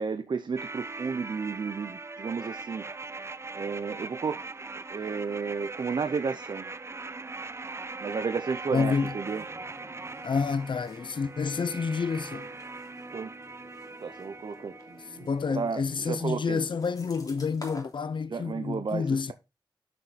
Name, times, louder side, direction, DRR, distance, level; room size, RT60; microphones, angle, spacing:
voice 1, 0.0-2.8 3.5-4.5 4.9-6.7 8.0-9.5 13.1-13.3 14.0-16.6 18.3-19.3, right 5 dB, 65° right, 0.7 m, -32 dB
sound 1, 0.6-15.6 15.8-15.9, right 3 dB, 30° right, 0.5 m, -41 dB
voice 2, 8.7-9.1 10.2-12.5 15.2-19.3, left 5 dB, 75° left, 0.7 m, -29 dB
sound 2, 9.2-18.0, left 2 dB, 45° left, 3.1 m, -50 dB
6.8 x 6.3 x 4.1 m
wide cardioid pair, 80°, 8 cm